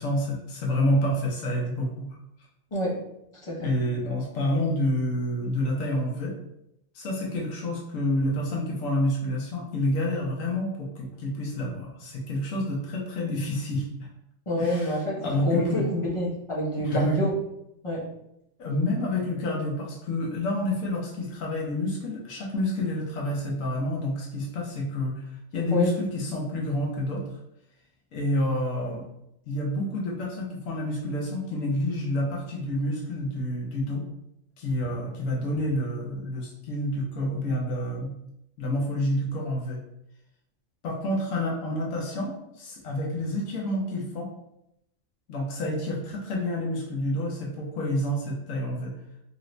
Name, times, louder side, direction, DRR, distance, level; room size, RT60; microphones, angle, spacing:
voice 1, 0.0-2.1 3.6-6.3 6.9-14.1 14.6-15.9 16.8-17.2 18.6-27.3 28.1-29.0 29.5-34.1 34.6-38.1 38.6-39.8 40.8-44.3 45.3-48.9, left 1 dB, 90° left, -1 dB, 1.1 m, -28 dB
voice 2, 2.7-3.0 3.4-3.7 14.5-17.3 17.8-18.1 25.7-26.0, equal, 30° left, -5 dB, 0.8 m, -27 dB
3.0 x 2.6 x 3.1 m, 0.81 s
omnidirectional pair, 1.3 m